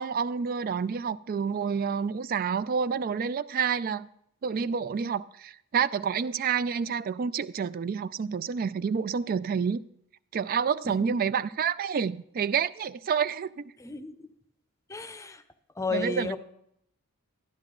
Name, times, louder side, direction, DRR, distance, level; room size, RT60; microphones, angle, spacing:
voice 1, 0.0-4.1 4.4-9.8 10.3-13.6 15.9-16.3, right 6 dB, 40° right, 0.3 m, -28 dB
voice 2, 13.8-14.1 14.9-15.4 15.8-16.4, left 3 dB, 15° left, 0.6 m, -32 dB
12.5 x 11.5 x 3.8 m
head